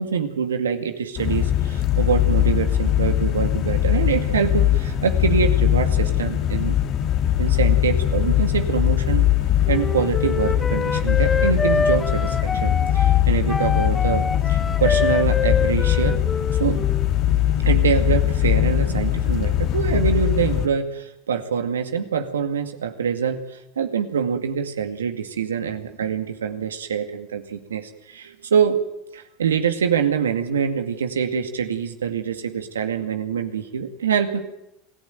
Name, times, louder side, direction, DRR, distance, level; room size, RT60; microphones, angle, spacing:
voice 1, 0.0-6.8 7.4-9.3 9.7-14.2 14.5-16.2 16.6-16.8 17.6-28.8 29.1-34.4, right 7 dB, 90° right, 7 dB, 2.2 m, -25 dB
sound 1, 1.2-20.7, left 12 dB, 50° left, 1.9 m, -21 dB
Wind instrument woodwind instrument, 9.7-17.1, left 4 dB, 20° left, 1.1 m, -26 dB
27.5 x 15.5 x 9.2 m, 0.87 s
hypercardioid pair, 85°, 0 cm